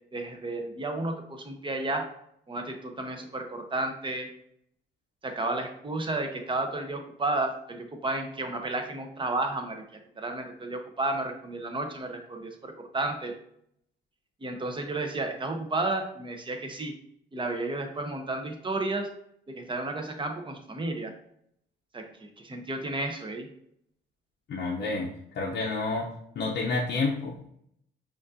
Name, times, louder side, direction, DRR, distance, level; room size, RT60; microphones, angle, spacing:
voice 1, 0.1-2.1 2.5-4.3 5.2-9.8 10.2-13.3 14.4-16.9 17.3-19.1 19.5-21.1 21.9-23.5, right 2 dB, 25° right, 4 dB, 0.7 m, -32 dB
voice 2, 24.5-25.1 25.3-26.1 26.4-27.5, left 3 dB, 60° left, -3 dB, 0.7 m, -29 dB
5.1 x 2.5 x 2.6 m, 0.71 s
cardioid pair, 90°, 20 cm